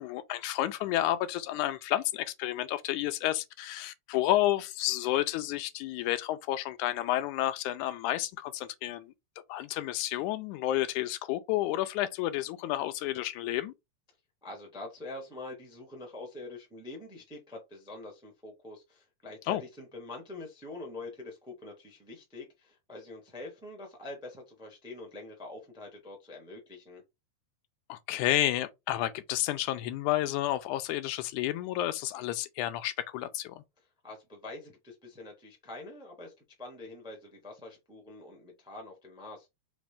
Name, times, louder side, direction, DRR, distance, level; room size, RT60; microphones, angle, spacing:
voice 1, 0.0-9.1 9.5-13.7 19.5-19.6 27.9-33.6, left 14 dB, 85° left, 2.0 m, -31 dB
voice 2, 14.4-27.0 33.8-39.5, left 2 dB, 5° right, 0.6 m, -45 dB
5.1 x 3.0 x 3.4 m
omnidirectional pair, 3.5 m